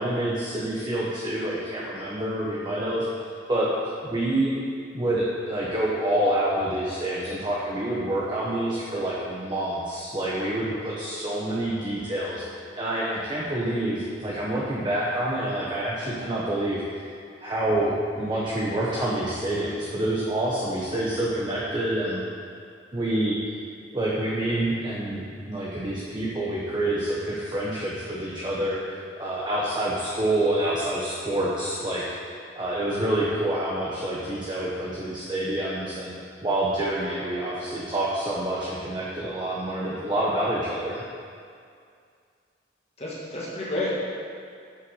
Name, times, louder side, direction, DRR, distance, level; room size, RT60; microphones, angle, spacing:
voice 1, 0.0-3.0 3.5-3.7 4.0-4.5 4.9-17.0 17.4-22.2 22.9-23.4 23.9-28.8 29.2-32.0 32.6-36.1 36.4-41.0, right 1 dB, 25° right, -6 dB, 1.1 m, -27 dB
voice 2, 43.0-43.9, left 2 dB, 35° left, -6 dB, 1.6 m, -30 dB
8.0 x 6.7 x 6.4 m, 2.3 s
head